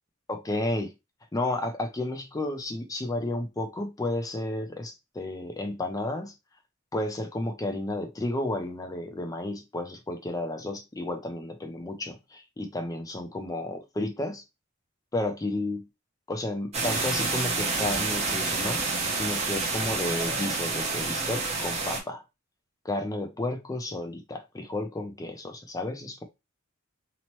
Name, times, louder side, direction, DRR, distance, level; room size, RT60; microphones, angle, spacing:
voice 1, 0.3-0.9 1.3-6.3 6.9-14.4 15.1-15.8 16.3-18.8 19.2-22.2 22.8-26.2, left 2 dB, 15° left, 0.4 m, -32 dB
sound 1, 16.7-22.0, right 3 dB, 30° right, 0.7 m, -28 dB
2.9 x 2.1 x 3.0 m
head